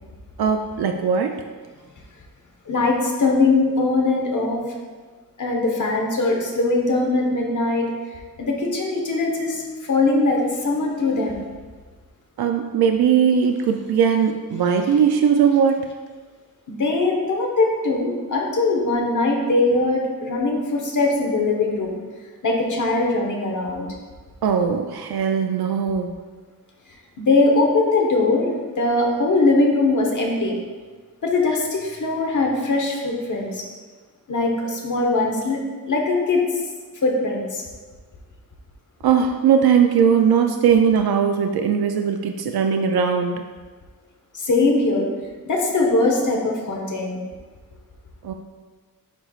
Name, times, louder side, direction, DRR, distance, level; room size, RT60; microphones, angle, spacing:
voice 1, 0.4-1.4 12.4-15.8 24.4-26.2 39.0-43.4 48.2-48.3, right 7 dB, 85° right, 4 dB, 0.5 m, -19 dB
voice 2, 2.6-4.6 5.4-9.6 9.9-11.4 16.7-22.0 22.4-23.9 27.2-30.6 31.2-33.7 34.3-35.6 35.9-36.5 37.0-37.6 44.3-45.1 45.4-47.2, left 3 dB, 55° left, 0 dB, 1.2 m, -21 dB
11.5 x 4.3 x 2.4 m, 1.4 s
wide cardioid pair, 150°, 37 cm